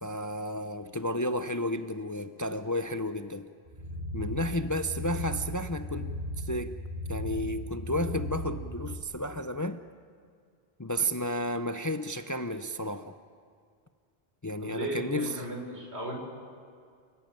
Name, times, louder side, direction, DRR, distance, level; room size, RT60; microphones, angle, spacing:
voice 1, 0.0-3.5 4.1-6.8 7.1-9.8 10.8-13.2 14.4-15.5, left 1 dB, 20° left, 10 dB, 0.6 m, -32 dB
sound 1, 3.7-9.0, equal, 50° right, 5.0 m, -36 dB
voice 2, 14.6-16.1, right 1 dB, 80° right, 0 dB, 5.2 m, -36 dB
29.0 x 15.0 x 9.2 m, 2.2 s
omnidirectional pair, 1.1 m